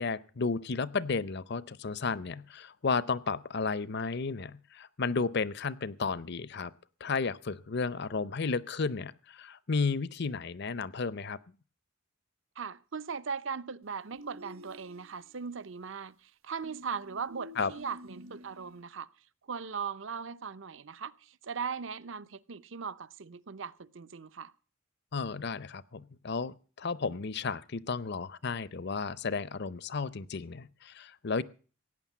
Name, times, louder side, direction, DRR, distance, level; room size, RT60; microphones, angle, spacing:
voice 1, 0.0-6.7 7.0-11.4 17.6-17.7 25.1-31.4, left 4 dB, 50° left, 0.6 m, -33 dB
voice 2, 12.6-19.1 19.5-24.5, right 6 dB, 60° right, 0.7 m, -39 dB
sound 1, 14.1-15.4 16.6-18.8, equal, 85° right, 1.5 m, -50 dB
17.0 x 9.7 x 7.3 m
head